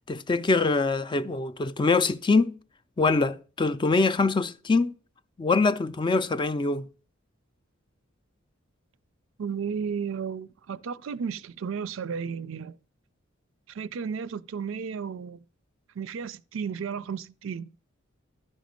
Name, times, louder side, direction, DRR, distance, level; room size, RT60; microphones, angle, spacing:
voice 1, 0.1-2.6 3.0-4.9 5.4-6.9, left 3 dB, 25° left, 0.4 m, -24 dB
voice 2, 9.4-12.8 13.7-15.4 16.0-17.7, right 6 dB, 65° right, 0.4 m, -33 dB
12.0 x 5.1 x 5.1 m
head